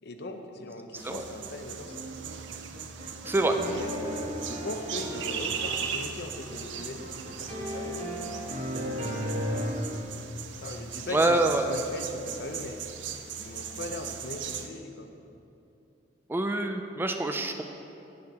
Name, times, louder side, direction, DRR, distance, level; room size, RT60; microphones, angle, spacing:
voice 1, 0.0-2.0 3.6-8.0 10.6-12.8 13.4-15.1, left 2 dB, 65° left, 6 dB, 0.6 m, -39 dB
sound 1, 1.0-14.7, right 7 dB, 85° right, 0.5 m, -38 dB
sound 2, 1.9-10.0, equal, 40° right, 1.2 m, -35 dB
voice 2, 3.3-3.6 11.1-11.6 16.3-17.6, right 2 dB, 10° right, 5 dB, 0.3 m, -25 dB
8.2 x 6.6 x 4.1 m, 2.7 s
head